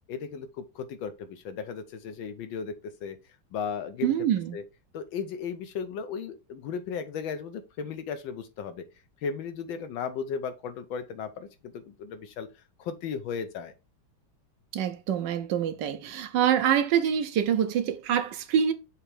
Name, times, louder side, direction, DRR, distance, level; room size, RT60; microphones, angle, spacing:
voice 1, 0.1-3.2 3.5-4.1 4.5-4.6 4.9-8.9 9.2-12.5 12.8-13.7, left 6 dB, 75° left, 1.4 m, -35 dB
voice 2, 4.0-4.6 14.7-18.7, right 9 dB, 70° right, 1.2 m, -25 dB
6.6 x 3.0 x 4.8 m
omnidirectional pair, 2.2 m